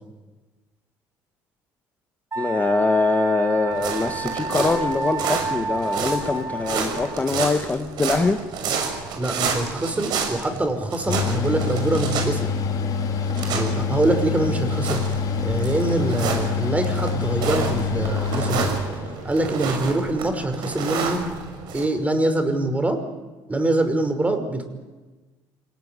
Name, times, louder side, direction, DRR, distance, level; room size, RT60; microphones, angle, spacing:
Wind instrument woodwind instrument, 2.3-7.3, right 3 dB, 35° right, 5.2 m, -30 dB
voice 1, 2.4-8.4, left 3 dB, 20° left, 7 dB, 1.7 m, -23 dB
sound 1, 3.7-21.9, right 5 dB, 70° right, 6.4 m, -30 dB
voice 2, 9.2-12.5 13.5-15.0 15.4-18.7 19.2-21.2 21.7-23.0 23.5-24.6, right 2 dB, 20° right, 7 dB, 5.5 m, -24 dB
Mechanical fan, 11.1-19.5, left 5 dB, 55° left, 3.4 m, -26 dB
26.5 x 19.0 x 9.9 m, 1.2 s
supercardioid pair, 75°, 8 cm